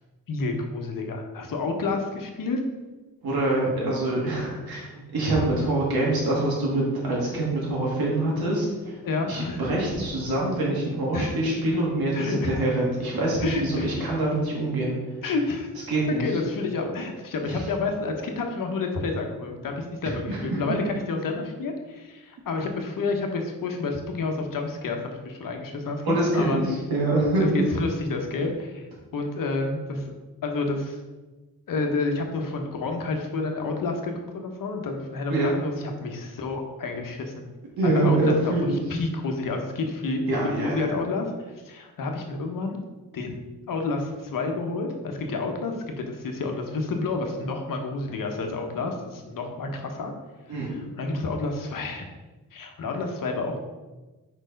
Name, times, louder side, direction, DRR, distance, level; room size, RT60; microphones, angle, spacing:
voice 1, 0.3-2.6 9.0-9.6 11.1-11.3 12.1-12.7 13.4-14.1 15.2-15.7 16.2-26.6 27.4-28.9 29.1-30.1 30.4-31.0 31.7-37.3 37.8-41.3 41.6-42.8 43.1-43.3 43.7-50.1 50.5-52.1 52.5-53.6, left 3 dB, 65° left, 3 dB, 1.0 m, -29 dB
voice 2, 3.2-8.9 9.3-15.0 15.9-16.3 17.5-17.6 20.3-20.8 26.1-27.7 35.3-35.5 37.8-38.8 40.3-41.0 50.5-50.7, right 2 dB, 85° right, -4 dB, 2.2 m, -25 dB
5.0 x 4.5 x 5.2 m, 1.2 s
wide cardioid pair, 150°, 36 cm